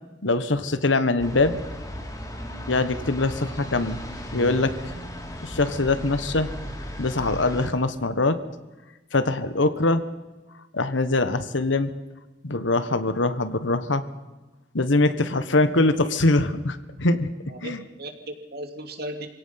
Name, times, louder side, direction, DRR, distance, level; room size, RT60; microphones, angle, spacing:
voice 1, 0.2-1.6 2.7-4.0 4.3-4.9 5.4-6.5 7.0-8.4 9.1-10.0 10.7-11.9 12.4-14.0 14.7-17.3 17.6-17.8, left 2 dB, 80° left, 11 dB, 1.4 m, -23 dB
sound 1, 1.2-7.7, equal, 20° left, 3.2 m, -36 dB
voice 2, 17.5-19.3, right 1 dB, 60° right, 5 dB, 2.7 m, -37 dB
26.5 x 17.5 x 5.9 m, 1.2 s
head